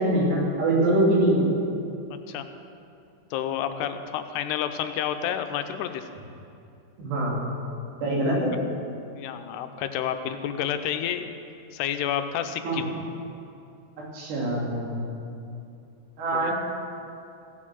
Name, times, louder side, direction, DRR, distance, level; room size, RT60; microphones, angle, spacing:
voice 1, 0.0-1.5 7.0-7.4 8.0-8.5 12.6-12.8 14.1-15.0 16.2-16.5, right 1 dB, 85° right, -4 dB, 4.8 m, -23 dB
voice 2, 2.1-2.5 3.3-6.1 9.2-11.3 11.7-12.9 16.3-16.5, left 9 dB, 85° left, 8 dB, 2.7 m, -30 dB
16.0 x 6.4 x 7.5 m, 2.6 s
omnidirectional pair, 4.7 m